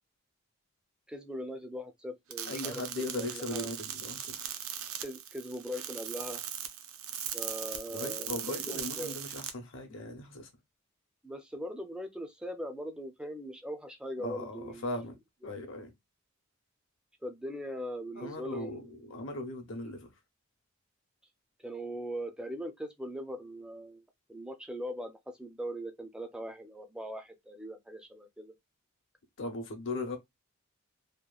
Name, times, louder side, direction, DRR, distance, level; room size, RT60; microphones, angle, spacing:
voice 1, 1.1-2.8 3.2-3.7 5.0-6.4 7.3-9.1 11.2-14.9 17.2-18.9 21.6-24.0 24.3-28.5, equal, 5° right, 0.3 m, -40 dB
sound 1, 2.3-9.5, right 9 dB, 65° right, 0.4 m, -39 dB
voice 2, 2.5-4.5 7.9-10.5 14.2-15.2 15.4-15.9 18.1-20.1 29.4-30.2, left 2 dB, 60° left, 0.7 m, -38 dB
2.8 x 2.1 x 2.3 m
head